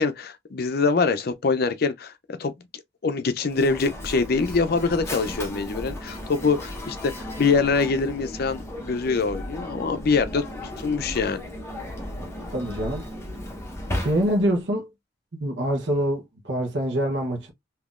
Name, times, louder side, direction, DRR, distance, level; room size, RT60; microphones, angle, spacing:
voice 1, 0.0-2.5 3.0-10.4 10.8-11.4, left 4 dB, 55° left, 0.5 m, -24 dB
Mechanisms, 3.5-14.6, left 1 dB, 15° left, 0.9 m, -35 dB
voice 2, 12.2-13.1 14.0-14.9 15.4-17.5, right 1 dB, 65° right, 1.0 m, -25 dB
3.8 x 2.7 x 2.4 m
head